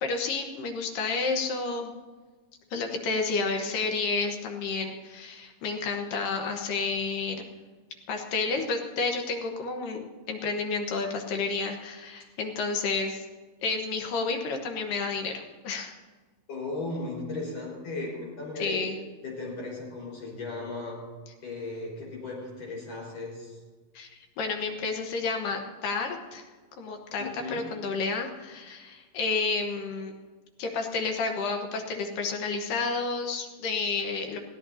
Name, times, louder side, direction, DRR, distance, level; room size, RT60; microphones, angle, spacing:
voice 1, 0.0-1.9 2.7-7.4 8.1-13.3 13.6-15.9 18.6-19.0 23.9-24.1 24.4-26.5 26.8-30.1 30.6-34.4, left 4 dB, 70° left, 3 dB, 2.7 m, -30 dB
voice 2, 16.5-18.9 19.2-21.0 21.4-23.6 27.2-27.6, left 3 dB, 45° left, -4 dB, 5.8 m, -36 dB
21.5 x 16.0 x 2.8 m, 1.4 s
omnidirectional pair, 4.3 m